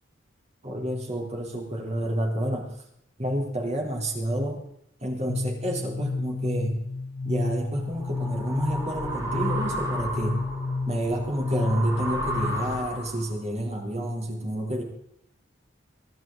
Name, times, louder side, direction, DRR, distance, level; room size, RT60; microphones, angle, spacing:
voice 1, 0.6-2.7 3.2-4.6 5.0-6.8 7.2-10.4 10.9-14.8, right 1 dB, 35° right, 0 dB, 3.6 m, -29 dB
sound 1, 5.3-12.9, left 3 dB, 70° left, 0.5 m, -31 dB
sound 2, 7.5-13.3, right 1 dB, 15° right, 4.6 m, -33 dB
24.5 x 11.0 x 4.0 m, 0.70 s
head